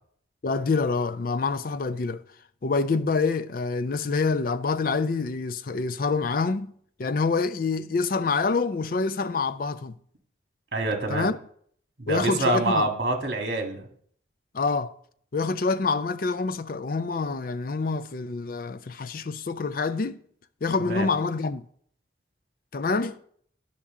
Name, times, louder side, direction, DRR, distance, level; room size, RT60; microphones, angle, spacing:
voice 1, 0.4-2.2 2.6-6.7 7.0-10.0 11.1-11.4 12.1-12.9 14.5-14.9 15.3-20.2 20.6-21.6 22.7-23.2, left 4 dB, 45° left, 0.4 m, -26 dB
voice 2, 10.7-11.3 12.0-13.8 20.8-21.1, right 2 dB, 60° right, 1.7 m, -26 dB
11.0 x 6.0 x 3.6 m
head